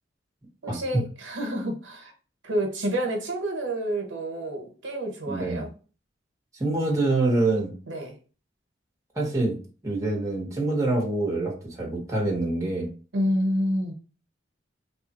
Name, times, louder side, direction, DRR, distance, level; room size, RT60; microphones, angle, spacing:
voice 1, 0.6-2.1 2.4-5.7 7.9-8.1 13.1-13.9, equal, 85° right, 1.1 m, -28 dB
voice 2, 5.2-5.6 6.6-7.7 9.1-9.6 9.8-12.9, right 2 dB, 20° right, 1.2 m, -25 dB
3.4 x 2.4 x 4.2 m
head